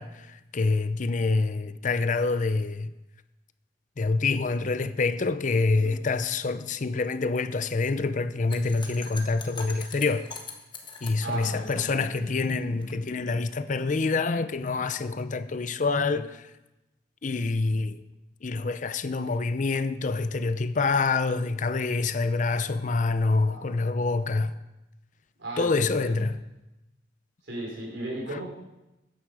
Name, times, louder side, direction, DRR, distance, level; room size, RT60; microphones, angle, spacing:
voice 1, 0.0-2.9 4.0-10.3 11.0-16.5 17.2-18.0 18.4-24.5 25.6-26.4 28.3-28.4, left 3 dB, 45° left, 0.5 m, -26 dB
sound 1, 8.5-12.9, left 4 dB, 25° left, 1.4 m, -42 dB
voice 2, 11.2-12.3 23.4-23.7 25.4-26.3 27.4-28.4, right 1 dB, 80° right, 4.4 m, -36 dB
13.5 x 9.5 x 4.8 m
head